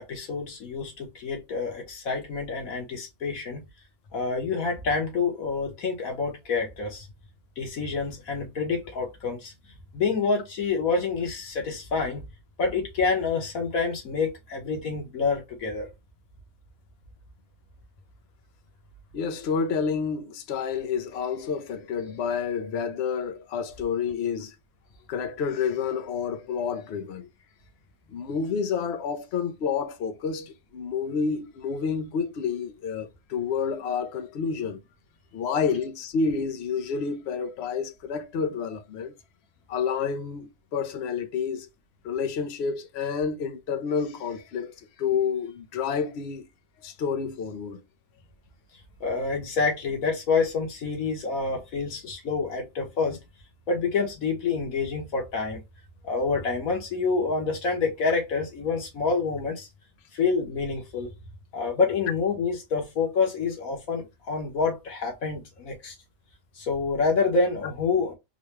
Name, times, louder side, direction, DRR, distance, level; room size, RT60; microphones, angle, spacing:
voice 1, 0.0-3.6 4.1-7.1 7.6-9.5 9.9-12.2 12.6-15.9 49.0-53.2 53.7-55.6 56.0-59.7 60.1-61.1 61.5-65.9 66.6-68.1, left 4 dB, 90° left, 1.7 m, -27 dB
voice 2, 19.1-24.5 25.1-27.3 28.1-34.8 35.3-39.1 39.7-41.7 42.0-46.5 46.8-47.8, left 6 dB, 60° left, 0.8 m, -29 dB
3.9 x 2.2 x 2.9 m
omnidirectional pair, 1.4 m